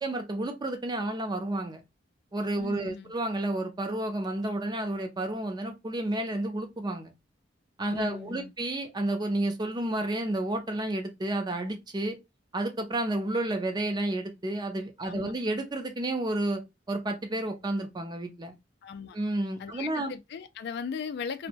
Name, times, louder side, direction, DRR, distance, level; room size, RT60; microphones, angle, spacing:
voice 1, 0.0-1.8 2.3-7.1 7.8-12.2 12.5-16.6 16.9-18.5 19.1-20.1, right 1 dB, 25° right, 0.5 m, -31 dB
voice 2, 2.6-3.1 7.9-8.5 15.0-15.3 18.8-19.2 19.6-21.5, left 6 dB, 65° left, 0.3 m, -38 dB
2.6 x 2.1 x 2.8 m
head